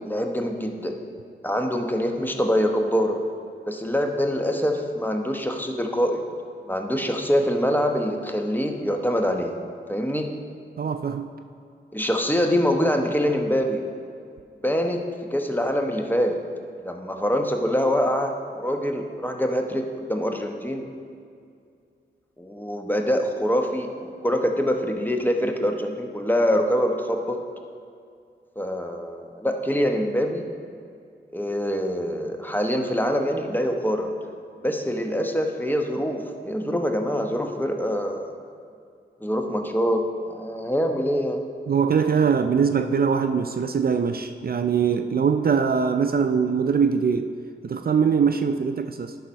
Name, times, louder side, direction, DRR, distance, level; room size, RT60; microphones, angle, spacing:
voice 1, 0.1-0.9 1.4-3.2 3.7-6.2 6.7-9.5 9.9-10.3 11.9-13.8 14.6-16.4 16.8-20.8 22.4-27.4 28.6-30.5 31.3-34.1 34.6-38.3 39.2-40.0 40.3-41.4, equal, 10° left, 4 dB, 1.0 m, -24 dB
voice 2, 10.8-11.3 41.7-47.3 47.6-49.2, right 6 dB, 50° right, 8 dB, 0.4 m, -22 dB
11.5 x 4.2 x 5.3 m, 2.3 s
cardioid pair, 45°, 20 cm